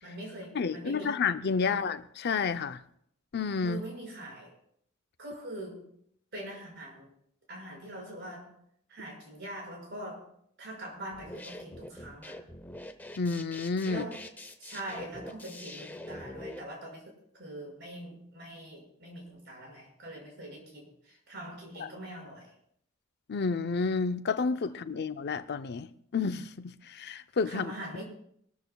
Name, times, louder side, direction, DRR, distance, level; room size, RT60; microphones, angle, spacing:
voice 1, 0.0-1.1 1.6-1.8 3.6-4.5 5.2-5.8 6.3-7.1 7.5-8.5 8.9-10.3 10.6-12.4 13.9-14.2 14.6-22.5 27.4-28.0, right 1 dB, 55° right, 6.1 m, -43 dB
voice 2, 0.5-2.8 3.3-3.8 13.2-14.0 21.8-21.9 23.3-27.7, left 4 dB, 50° left, 0.6 m, -30 dB
sound 1, 11.1-16.6, left 1 dB, 10° left, 0.8 m, -44 dB
24.0 x 13.5 x 2.3 m
head